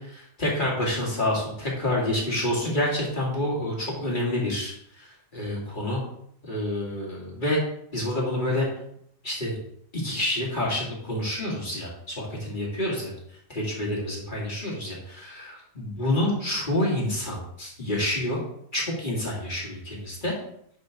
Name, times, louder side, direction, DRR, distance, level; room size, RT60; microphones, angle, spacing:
voice 1, 0.0-6.0 6.4-7.6 7.9-8.7 9.2-9.6 9.9-13.1 13.5-18.4 18.7-20.3, left 1 dB, 25° left, -4 dB, 2.4 m, -28 dB
10.5 x 4.0 x 4.7 m, 0.71 s
omnidirectional pair, 1.9 m